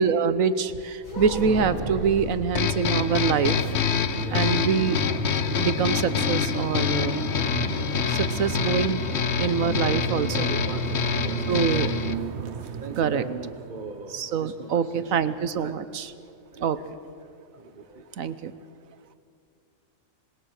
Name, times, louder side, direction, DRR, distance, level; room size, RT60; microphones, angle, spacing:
voice 1, 0.0-3.6 4.3-5.0 5.6-7.2 8.0-9.0 9.4-10.5 11.5-11.9 13.0-13.2 14.1-16.1 16.6-16.8 18.2-18.5, right 6 dB, 70° right, 13 dB, 1.3 m, -25 dB
sound 1, 1.0-2.5 4.2-5.2 5.4-5.5 5.9-6.2, left 1 dB, 35° left, 6.5 m, -33 dB
sound 2, 2.6-12.2, left 8 dB, 55° left, 1.0 m, -26 dB
sound 3, 2.9-14.8, right 6 dB, 55° right, 1.1 m, -33 dB
voice 2, 4.1-4.5 10.1-11.6 12.7-15.2 15.5-15.7 16.5-16.8 17.5-18.0, right 3 dB, 35° right, 4 dB, 1.3 m, -40 dB
26.5 x 20.0 x 6.5 m, 2.3 s
omnidirectional pair, 1.5 m